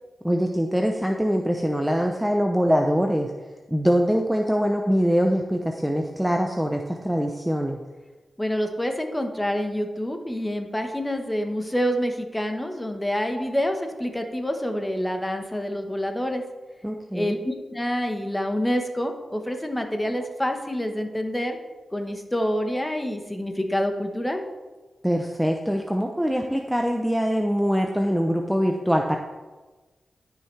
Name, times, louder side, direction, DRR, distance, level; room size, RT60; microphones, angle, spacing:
voice 1, 0.2-3.3 3.7-7.8 16.8-17.4 25.0-29.2, equal, 5° right, 3 dB, 0.7 m, -23 dB
voice 2, 8.4-16.4 17.1-21.6 21.9-24.4, equal, 15° left, 5 dB, 1.2 m, -27 dB
12.5 x 5.7 x 3.3 m, 1.2 s
cardioid pair, 55°, 0 cm